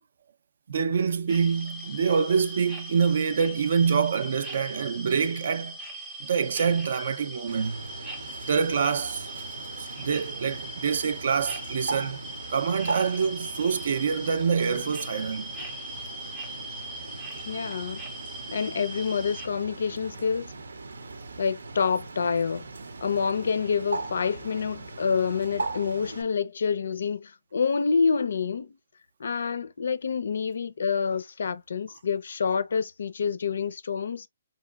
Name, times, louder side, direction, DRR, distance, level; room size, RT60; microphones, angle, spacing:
voice 1, 0.7-5.8 6.2-7.9 8.5-9.3 10.0-12.2 12.5-15.5, right 6 dB, 45° right, 0.4 m, -26 dB
sound 1, 1.3-19.5, equal, 5° right, 0.6 m, -40 dB
Bird, 7.5-26.2, right 3 dB, 85° right, 0.6 m, -39 dB
voice 2, 17.5-18.0 18.5-20.5 21.4-22.6 23.0-28.8 29.2-34.3, left 6 dB, 55° left, 0.4 m, -27 dB
3.7 x 2.9 x 2.2 m
hypercardioid pair, 180°, 0 cm